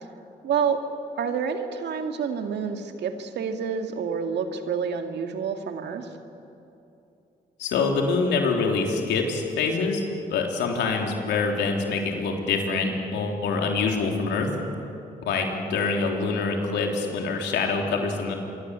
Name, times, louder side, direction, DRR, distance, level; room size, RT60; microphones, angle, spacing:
voice 1, 0.4-0.8 1.1-6.1, right 6 dB, 80° right, 6 dB, 2.2 m, -28 dB
voice 2, 7.6-10.0 10.3-14.5 15.2-18.3, left 4 dB, 90° left, 2 dB, 3.6 m, -25 dB
26.5 x 23.5 x 8.3 m, 2.8 s
supercardioid pair, 60°, 18 cm